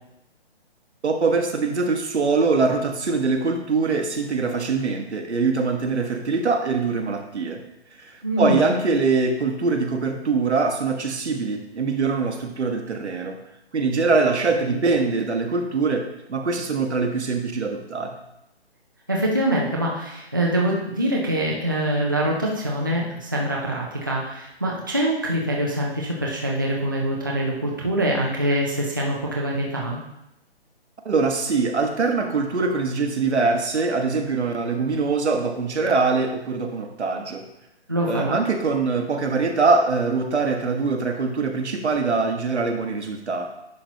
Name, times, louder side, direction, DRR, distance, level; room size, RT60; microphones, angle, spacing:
voice 1, 1.0-7.6 8.0-13.4 13.7-18.2 31.0-37.4 38.1-43.5, right 4 dB, 85° right, 3 dB, 1.4 m, -23 dB
voice 2, 8.2-8.6 14.7-14.8 19.1-30.0 37.9-38.4, right 1 dB, 20° right, -3 dB, 0.5 m, -24 dB
9.9 x 5.8 x 2.8 m, 0.84 s
hypercardioid pair, 175°, 33 cm